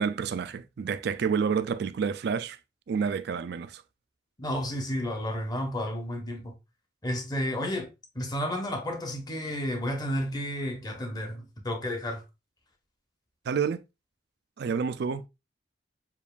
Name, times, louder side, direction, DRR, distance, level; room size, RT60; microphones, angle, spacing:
voice 1, 0.0-2.6 2.9-3.8 13.5-13.8 14.6-15.2, right 6 dB, 60° right, 0.3 m, -29 dB
voice 2, 4.4-6.6 7.0-7.9 8.1-12.2, equal, 20° left, 0.8 m, -31 dB
7.0 x 2.5 x 2.3 m
head